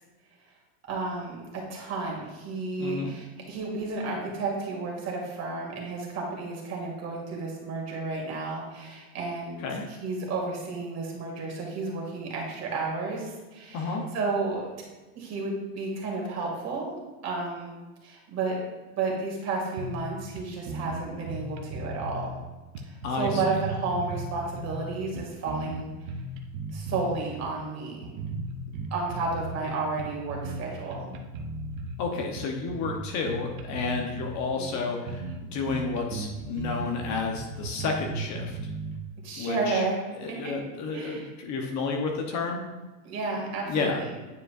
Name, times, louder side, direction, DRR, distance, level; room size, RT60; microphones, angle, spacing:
voice 1, 0.9-9.6 10.0-14.7 15.1-17.7 18.0-18.6 19.0-22.4 22.8-26.1 26.7-28.1 28.9-31.1 34.6-35.0 39.2-40.5 40.9-41.3 43.0-44.1, right 3 dB, 35° right, -1 dB, 2.2 m, -32 dB
voice 2, 2.8-3.1 9.6-9.8 13.7-14.0 23.0-23.4 32.0-38.6 39.4-39.8 40.2-42.6 43.6-44.0, left 4 dB, 35° left, 2 dB, 0.9 m, -31 dB
sound 1, 19.8-20.1 20.4-20.5 20.7-22.3 22.7-24.8 25.2-27.1 27.4-27.6 28.0-29.7 30.0-30.6 30.9-32.0 32.4-34.4 34.8-34.9 35.1-35.4 35.7-39.0, right 2 dB, 60° right, 1.0 m, -36 dB
9.5 x 4.9 x 2.5 m, 1.2 s
supercardioid pair, 120°, 46 cm